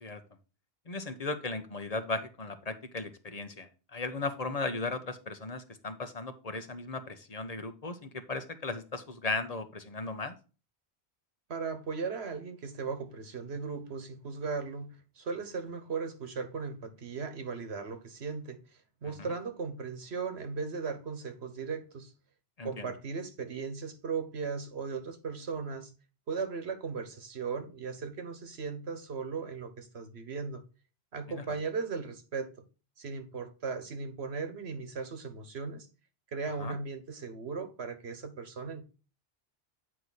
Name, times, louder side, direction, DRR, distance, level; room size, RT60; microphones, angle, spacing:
voice 1, 0.9-10.3 19.0-19.1 22.6-22.9 31.3-31.4 36.6-36.7, left 3 dB, 40° left, 1.0 m, -36 dB
voice 2, 11.5-18.6 19.0-22.1 22.6-25.9 26.3-30.6 31.1-32.5 33.0-35.9 36.3-38.8, right 5 dB, 85° right, 1.5 m, -37 dB
8.7 x 4.8 x 4.0 m
omnidirectional pair, 1.1 m